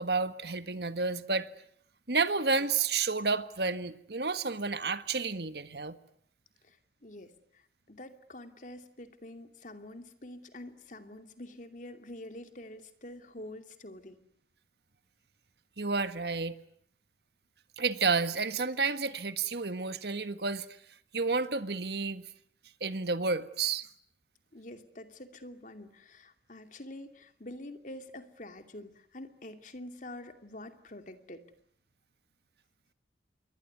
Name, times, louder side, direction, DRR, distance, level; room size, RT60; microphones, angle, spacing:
voice 1, 0.0-1.5 2.1-6.0 15.8-16.5 17.8-20.7 21.1-22.2 22.8-23.9, right 4 dB, 65° right, 1.6 m, -30 dB
voice 2, 7.0-7.6 7.9-14.2 24.5-31.4, left 1 dB, 45° left, 2.6 m, -46 dB
27.5 x 22.5 x 9.5 m
head